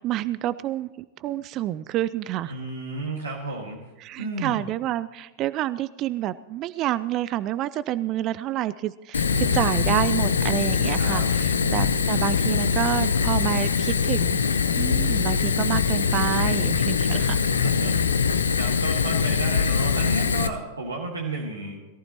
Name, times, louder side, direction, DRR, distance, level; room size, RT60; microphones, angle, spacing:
voice 1, 0.0-2.5 4.0-17.4, right 13 dB, 35° right, 16 dB, 0.4 m, -28 dB
voice 2, 2.5-3.8 4.2-4.6 9.3-10.0 11.0-11.3 11.6-12.0 17.4-21.8, right 2 dB, 80° right, -3 dB, 1.8 m, -33 dB
Fire, 9.1-20.5, left 6 dB, 70° left, 0.7 m, -23 dB
21.5 x 14.5 x 3.0 m, 1.2 s
figure-of-eight pair, 90°, 0 cm